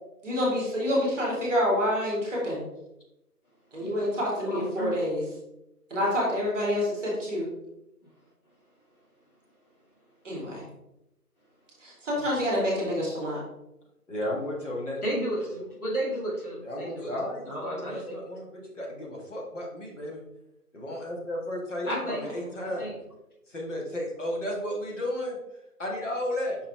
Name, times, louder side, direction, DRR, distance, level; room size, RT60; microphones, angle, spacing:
voice 1, 0.2-2.7 3.7-5.2 5.9-7.5 10.2-10.6 11.8-13.4 21.9-22.0 22.4-22.5, left 1 dB, ahead, -4 dB, 1.9 m, -27 dB
voice 2, 4.4-5.0 8.0-8.1 15.0-18.0 21.8-22.2 22.8-22.9, right 1 dB, 65° left, -4 dB, 2.4 m, -33 dB
voice 3, 14.1-15.2 16.6-18.5 18.8-20.2 20.7-22.9 23.5-25.4 25.8-26.6, left 1 dB, 50° left, -1 dB, 1.9 m, -33 dB
5.6 x 5.1 x 3.4 m, 0.87 s
figure-of-eight pair, 160°, 47 cm